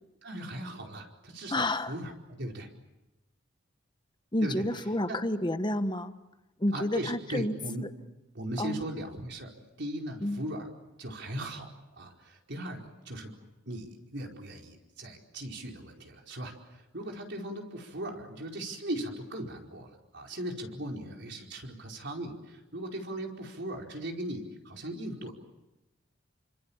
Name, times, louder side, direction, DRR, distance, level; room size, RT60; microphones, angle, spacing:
voice 1, 0.2-2.7 4.4-4.6 5.1-5.2 6.7-7.8 8.3-9.5 9.8-10.7 11.0-11.7 12.0-13.3 13.7-25.3, right 1 dB, 60° right, 1 dB, 4.7 m, -38 dB
voice 2, 1.5-1.9 4.3-6.1 6.6-7.9 8.6-8.8 10.2-10.4, left 1 dB, 25° left, 10 dB, 1.4 m, -30 dB
29.5 x 25.5 x 7.3 m, 1.0 s
head